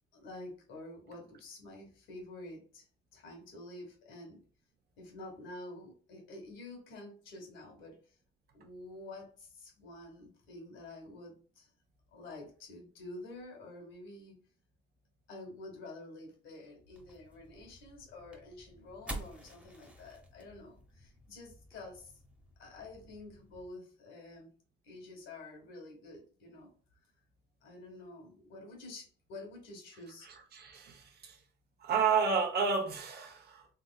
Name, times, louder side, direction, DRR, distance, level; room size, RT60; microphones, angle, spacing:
voice 1, 0.1-2.8 3.1-4.4 5.0-8.2 8.5-11.7 12.1-14.4 15.3-22.2 22.6-24.5 24.8-26.7 27.6-30.3, left 2 dB, 80° left, 1.5 m, -49 dB
sound 1, 16.9-23.7, right 1 dB, 5° right, 0.8 m, -50 dB
voice 2, 30.2-31.4 31.8-33.7, right 5 dB, 55° right, 0.9 m, -31 dB
3.6 x 3.0 x 2.3 m
cardioid pair, 90°, 20 cm